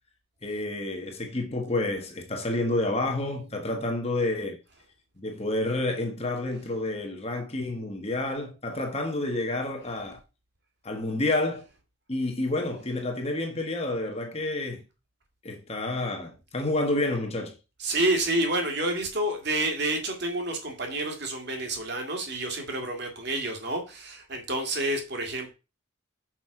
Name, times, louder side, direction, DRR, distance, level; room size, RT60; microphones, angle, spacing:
voice 1, 0.4-4.6 5.2-10.2 10.8-11.7 12.1-14.8 15.4-17.6, left 2 dB, 30° left, 1.3 m, -29 dB
voice 2, 17.8-25.5, right 1 dB, 50° right, 2.0 m, -29 dB
6.1 x 5.3 x 4.8 m
head